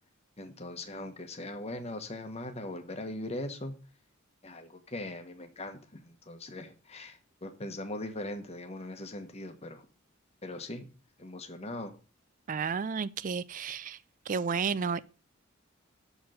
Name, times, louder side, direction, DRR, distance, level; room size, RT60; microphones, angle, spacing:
voice 1, 0.4-3.7 4.4-9.9 10.4-10.9 11.2-11.9, left 1 dB, 30° left, 1.2 m, -40 dB
voice 2, 12.5-14.0 14.3-15.0, right 5 dB, 40° right, 0.4 m, -32 dB
6.9 x 4.5 x 6.3 m
head